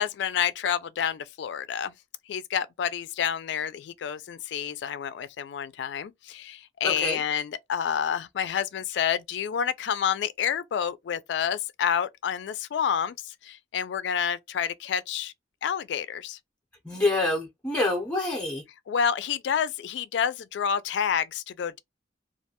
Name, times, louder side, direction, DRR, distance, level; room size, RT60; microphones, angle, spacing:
voice 1, 0.0-1.9 2.3-15.3 15.6-16.4 18.9-21.8, left 8 dB, 70° left, 0.3 m, -29 dB
voice 2, 6.8-7.2 16.8-18.6, left 2 dB, 10° left, 0.5 m, -26 dB
2.3 x 2.1 x 2.8 m
head